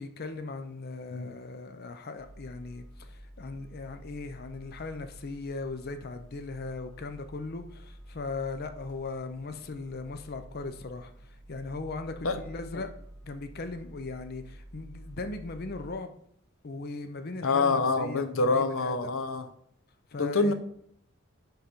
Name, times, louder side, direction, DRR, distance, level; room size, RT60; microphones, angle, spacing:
voice 1, 0.0-12.9 13.2-16.1 16.6-19.1 20.1-20.5, left 3 dB, 50° left, 0.6 m, -38 dB
sound 1, 2.2-15.9, equal, 20° left, 2.2 m, -49 dB
voice 2, 17.4-19.5 20.2-20.5, left 3 dB, 90° left, 0.7 m, -26 dB
10.5 x 3.9 x 4.3 m
head